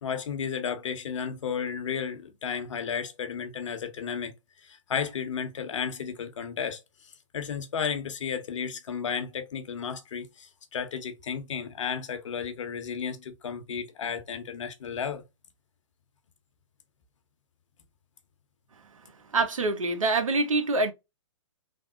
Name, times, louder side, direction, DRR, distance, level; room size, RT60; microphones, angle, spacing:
voice 1, 0.0-4.3 4.6-15.2, left 7 dB, 70° left, 0.9 m, -33 dB
voice 2, 19.3-20.9, right 3 dB, 85° right, 0.8 m, -25 dB
3.5 x 2.0 x 2.5 m
hypercardioid pair, 140°, 17 cm